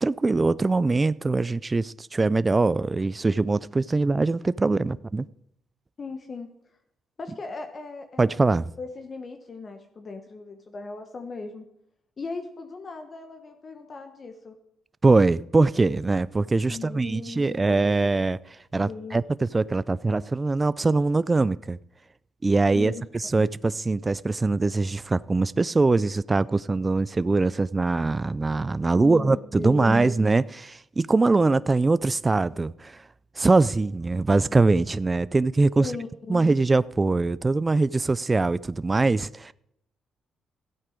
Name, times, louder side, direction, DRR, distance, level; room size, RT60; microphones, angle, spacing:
voice 1, 0.0-5.2 8.2-8.7 15.0-21.8 22.4-33.0 33.4-35.9 36.3-39.5, right 3 dB, 25° right, 0.3 m, -22 dB
voice 2, 6.0-6.5 7.2-8.5 8.8-11.6 12.2-14.6 16.7-17.8 18.9-19.2 22.7-22.9 23.4-23.5 29.0-30.0 35.8-36.4, left 3 dB, 40° left, 1.1 m, -37 dB
13.5 x 8.6 x 5.0 m
cardioid pair, 90°, 0 cm